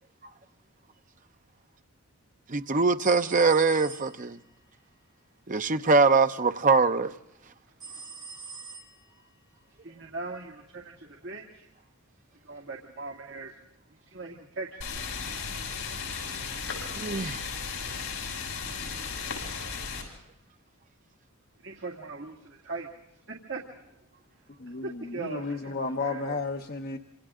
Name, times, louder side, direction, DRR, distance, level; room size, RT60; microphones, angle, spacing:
voice 1, 2.5-4.4 5.5-7.1 16.9-17.4, right 4 dB, 35° right, 0.8 m, -23 dB
sound 1, 3.0-4.4 7.8-9.3, right 5 dB, 20° right, 2.5 m, -44 dB
voice 2, 9.8-11.7 12.4-13.5 14.1-15.1 15.8-16.0 21.6-22.9 23.3-23.7 24.8-25.4 26.0-26.4, right 3 dB, 55° right, 2.4 m, -39 dB
sound 2, 14.8-20.0, left 5 dB, 80° left, 7.2 m, -35 dB
voice 3, 24.6-27.0, left 4 dB, 45° left, 0.9 m, -33 dB
27.5 x 26.5 x 3.8 m
head